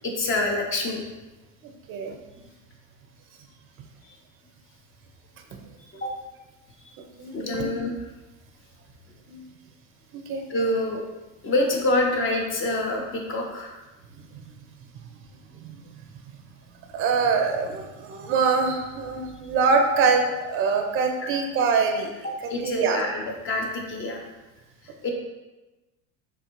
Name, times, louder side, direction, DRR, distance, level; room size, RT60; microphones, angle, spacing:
voice 1, 0.0-1.0 5.9-6.1 7.3-8.0 10.5-11.0 11.4-13.7 21.2-21.4 22.2-24.3 24.8-25.1, left 2 dB, 30° left, 0 dB, 0.7 m, -26 dB
voice 2, 7.2-7.7 9.3-9.4 10.1-10.4 15.5-15.7 16.9-22.1 22.6-23.0, right 5 dB, 30° right, 5 dB, 0.5 m, -24 dB
3.5 x 2.3 x 3.0 m, 1.1 s
hypercardioid pair, 80°, 42 cm